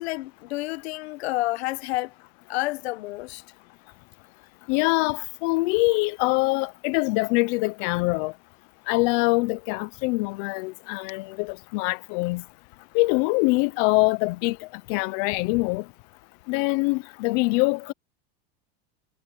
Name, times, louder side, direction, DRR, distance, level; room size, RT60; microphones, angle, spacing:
voice 1, 0.0-2.1 2.5-3.4, left 19 dB, 80° left, 1.2 m, -29 dB
voice 2, 4.7-8.3 8.9-12.4 12.9-14.6 14.9-15.8 16.5-17.9, left 25 dB, 60° left, 0.9 m, -24 dB
supercardioid pair, 140°, 31 cm